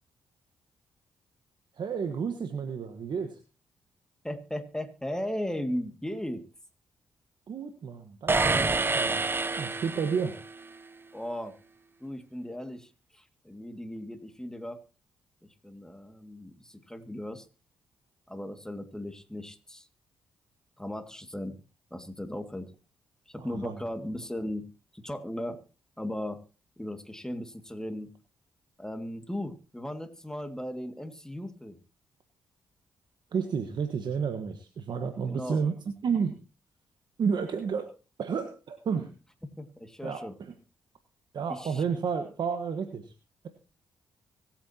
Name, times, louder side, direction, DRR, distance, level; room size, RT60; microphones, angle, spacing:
voice 1, 1.8-3.4 7.5-9.3 9.6-10.4 23.4-23.8 33.3-35.8 36.0-36.3 37.2-37.9 38.2-39.1 40.0-40.5 41.3-43.1, right 6 dB, 60° right, 7 dB, 1.4 m, -31 dB
voice 2, 4.2-6.4 11.1-11.5 12.0-14.8 15.4-17.5 18.3-19.9 20.8-21.6 21.9-22.7 23.3-24.7 24.9-25.6 26.0-26.4 26.8-28.1 28.8-31.8 35.3-35.6 39.6-40.4 41.5-41.8, left 1 dB, 5° left, 8 dB, 2.1 m, -37 dB
sound 1, 8.3-10.5, right 3 dB, 25° right, 0.7 m, -27 dB
24.5 x 8.8 x 2.9 m, 0.33 s
supercardioid pair, 50°, 8 cm